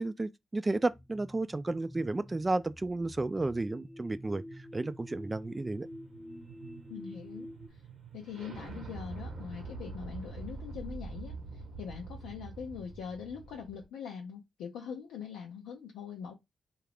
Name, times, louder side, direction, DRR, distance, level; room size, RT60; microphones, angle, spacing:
voice 1, 0.0-4.4 4.7-5.9, right 2 dB, 30° right, 0.3 m, -32 dB
sound 1, 0.9-7.7, left 1 dB, 10° left, 0.8 m, -48 dB
sound 2, 3.7-13.8, right 3 dB, 80° right, 0.9 m, -46 dB
voice 2, 6.9-7.8 8.1-16.3, left 7 dB, 90° left, 0.5 m, -43 dB
2.4 x 2.3 x 3.3 m
supercardioid pair, 40°, 0 cm